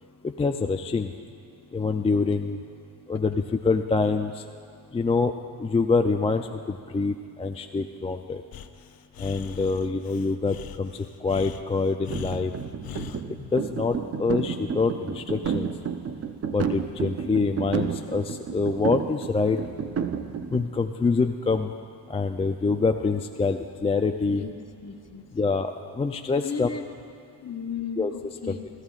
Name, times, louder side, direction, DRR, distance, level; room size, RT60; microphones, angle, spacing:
voice 1, 0.2-1.1 1.7-2.6 3.1-4.4 4.9-5.3 5.6-8.4 9.2-12.5 13.5-15.7 16.5-19.6 20.5-21.7 22.1-24.5 25.3-26.7 28.0-28.1 28.5-28.6, left 4 dB, 15° left, 5 dB, 0.3 m, -25 dB
Breathing, 8.5-13.3, left 10 dB, 55° left, 0.7 m, -41 dB
sound 1, 12.1-20.6, right 6 dB, 35° right, 0.7 m, -31 dB
voice 2, 24.3-25.3 26.4-26.8 27.4-28.6, left 6 dB, 35° left, 4 dB, 1.2 m, -35 dB
22.5 x 14.0 x 2.4 m, 2.3 s
cardioid pair, 80°, 44 cm